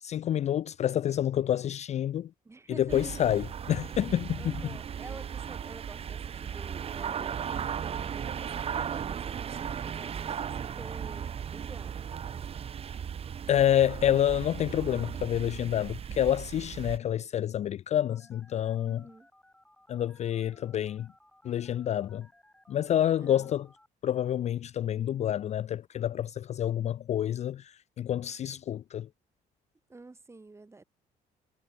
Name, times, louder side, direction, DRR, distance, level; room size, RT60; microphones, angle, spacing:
voice 1, 0.0-2.3 2.7-4.7 13.5-19.1 19.9-21.1 21.4-22.3 22.7-23.7 24.0-29.1, left 11 dB, 40° left, 0.4 m, -28 dB
voice 2, 2.4-3.5 4.4-12.0 12.3-12.5 18.8-19.3 23.2-23.6 29.9-30.8, right 3 dB, 15° right, 1.7 m, -49 dB
sound 1, 2.9-17.0, right 8 dB, 35° right, 0.7 m, -36 dB
Telephone, 18.1-23.9, left 1 dB, 5° left, 5.9 m, -61 dB
cardioid pair, 110°, 17 cm